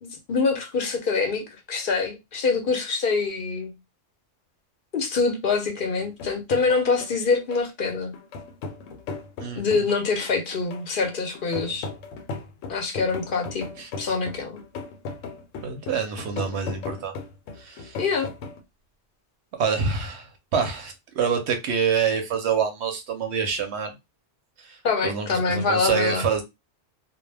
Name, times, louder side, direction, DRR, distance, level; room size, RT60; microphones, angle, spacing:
voice 1, 0.0-3.7 4.9-8.1 9.6-11.9 12.7-13.7 14.0-14.6 18.0-18.3 24.8-26.3, left 4 dB, 55° left, 0.7 m, -25 dB
sound 1, 6.0-18.6, left 4 dB, 90° left, 0.9 m, -37 dB
voice 2, 9.4-9.9 13.8-13.9 15.6-17.1 17.6-18.0 19.6-23.9 24.6-24.8 25.0-26.4, right 6 dB, 70° right, 0.8 m, -26 dB
2.2 x 2.1 x 3.2 m
omnidirectional pair, 1.3 m